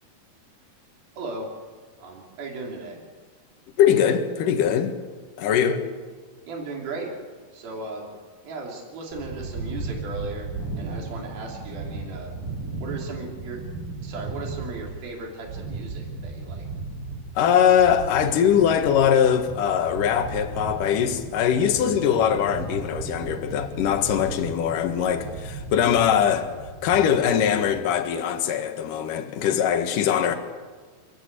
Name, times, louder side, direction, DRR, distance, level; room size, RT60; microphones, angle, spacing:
voice 1, 1.2-1.5 2.0-3.0 6.4-7.1 7.5-8.1 8.4-10.5 10.8-12.3 12.8-13.6 14.0-16.7 30.3-30.4, right 3 dB, 70° right, 5.2 m, -36 dB
voice 2, 3.8-4.9 5.4-5.8 17.4-26.5 26.8-30.3, left 8 dB, 65° left, 2.9 m, -21 dB
sound 1, 9.1-27.8, right 3 dB, 25° right, 5.0 m, -36 dB
28.0 x 13.5 x 8.5 m
omnidirectional pair, 4.4 m